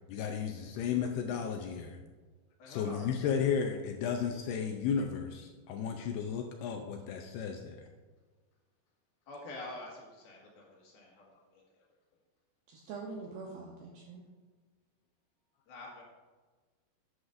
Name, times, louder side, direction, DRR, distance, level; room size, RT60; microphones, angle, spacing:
voice 1, 0.1-2.0 2.7-7.9, left 7 dB, 80° left, 3 dB, 2.4 m, -34 dB
voice 2, 2.6-3.3 9.3-11.6 15.7-16.0, left 2 dB, 60° left, -3 dB, 3.3 m, -47 dB
voice 3, 12.7-14.2, right 4 dB, 70° right, -2 dB, 2.5 m, -44 dB
12.5 x 9.6 x 2.6 m, 1.4 s
omnidirectional pair, 5.2 m